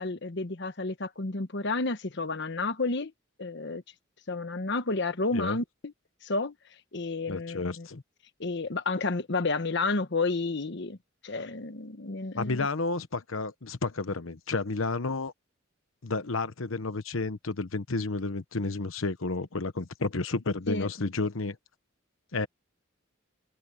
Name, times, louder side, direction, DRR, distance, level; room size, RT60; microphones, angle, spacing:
voice 1, 0.0-3.1 3.4-3.8 4.3-5.9 6.2-6.5 6.9-7.9 8.4-11.0 11.2-12.7 20.7-20.9, left 3 dB, 60° left, 1.1 m, -31 dB
voice 2, 7.3-8.0 12.4-15.3 16.0-21.6 22.3-22.5, left 3 dB, 85° left, 1.0 m, -31 dB
head